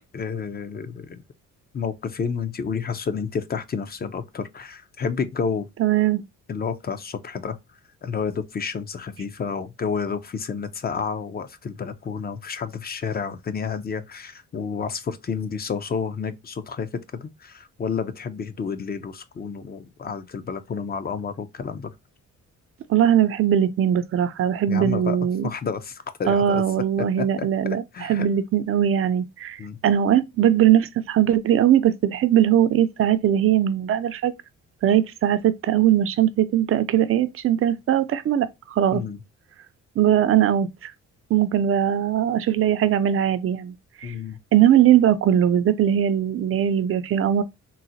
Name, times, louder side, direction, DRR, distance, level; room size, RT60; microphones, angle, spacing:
voice 1, 0.1-1.2 1.7-5.7 6.5-7.6 8.0-21.9 24.7-25.2 25.4-26.6 27.2-28.3 29.6-29.8 38.9-39.2 44.0-44.4, left 6 dB, 30° left, 0.5 m, -30 dB
voice 2, 5.8-6.2 22.9-25.5 26.2-34.3 34.8-39.0 40.0-40.9 41.3-44.1 44.5-47.4, right 10 dB, 50° right, 0.4 m, -20 dB
3.9 x 2.1 x 2.7 m
cardioid pair, 90°, 30 cm